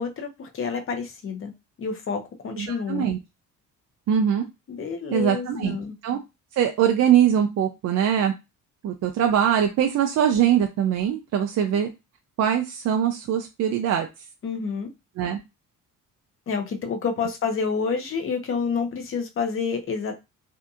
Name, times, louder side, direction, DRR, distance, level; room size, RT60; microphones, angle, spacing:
voice 1, 0.0-1.5 1.8-3.1 4.7-5.9 14.4-14.9 16.5-20.1, left 5 dB, 40° left, 0.7 m, -28 dB
voice 2, 2.6-3.2 4.1-4.4 5.1-5.8 6.0-6.2 6.5-8.3 8.8-11.9 12.4-14.1 15.2-15.4, right 9 dB, 50° right, 0.4 m, -22 dB
2.7 x 2.5 x 2.3 m
cardioid pair, 120°, 34 cm